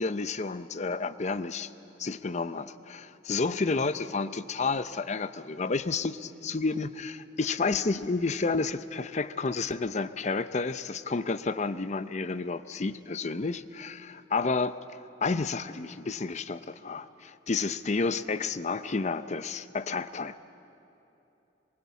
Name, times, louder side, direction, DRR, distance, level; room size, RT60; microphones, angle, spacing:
voice 1, 0.0-1.7 2.0-14.8 15.2-20.4, left 4 dB, 40° left, 13 dB, 0.6 m, -30 dB
23.5 x 23.0 x 8.4 m, 2.9 s
head